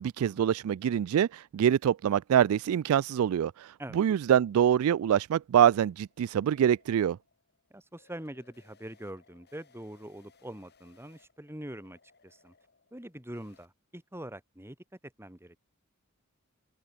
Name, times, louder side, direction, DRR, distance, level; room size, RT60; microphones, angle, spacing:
voice 1, 0.0-7.2, right 9 dB, 70° right, 0.3 m, -25 dB
sound 1, 5.3-13.7, left 4 dB, 50° left, 7.4 m, -66 dB
voice 2, 7.7-12.5 12.9-14.8 15.2-15.6, right 1 dB, 10° right, 3.8 m, -44 dB
head